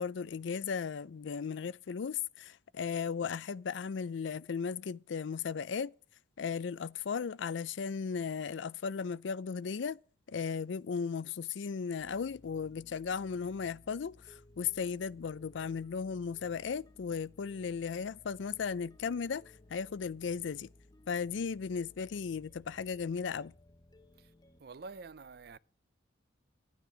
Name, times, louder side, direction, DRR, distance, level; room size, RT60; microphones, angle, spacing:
voice 1, 0.0-5.9 6.4-10.0 10.3-19.4 19.7-20.7 21.1-23.5, left 6 dB, 75° left, 0.4 m, -36 dB
sound 1, 12.0-24.6, left 1 dB, 20° left, 0.7 m, -60 dB
voice 2, 24.6-25.6, right 4 dB, 55° right, 0.4 m, -47 dB
11.5 x 9.5 x 4.9 m
head